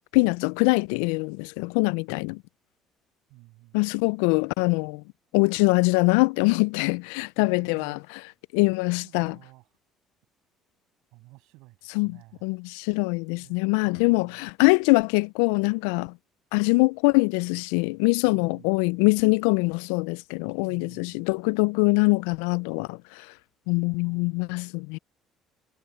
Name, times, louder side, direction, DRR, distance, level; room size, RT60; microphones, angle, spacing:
voice 1, 0.1-2.4 3.7-5.0 5.3-8.0 8.5-9.4 11.9-16.1 16.5-23.0 23.7-25.0, left 28 dB, 85° left, 0.3 m, -23 dB
voice 2, 3.3-3.9 7.4-8.0 9.0-9.7 11.1-12.6 13.4-14.5 18.2-19.0 20.6-21.2 24.0-24.6, right 22 dB, 75° right, 7.2 m, -52 dB
hypercardioid pair, 65°, 0 cm